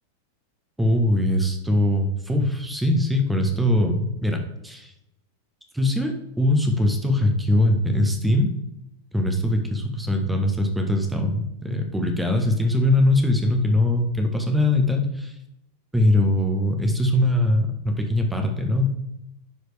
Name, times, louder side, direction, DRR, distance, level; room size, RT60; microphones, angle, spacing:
voice 1, 0.8-4.9 5.7-8.6 9.1-15.3 15.9-18.9, left 1 dB, 5° right, 4 dB, 1.3 m, -22 dB
11.0 x 4.9 x 3.4 m, 0.82 s
figure-of-eight pair, 90°, 0 cm